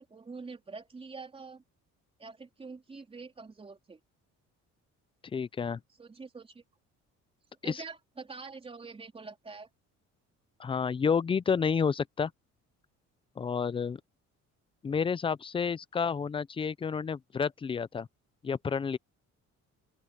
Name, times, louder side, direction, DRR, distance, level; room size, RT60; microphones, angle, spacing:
voice 1, 0.0-1.6 2.2-4.0 6.0-6.6 7.6-9.7, right 4 dB, 20° right, 3.8 m, -45 dB
voice 2, 5.3-5.8 7.6-7.8 10.6-12.3 13.4-14.0 14.8-18.1 18.4-19.0, left 6 dB, 20° left, 0.4 m, -30 dB
open air
cardioid pair, 150°, 30 cm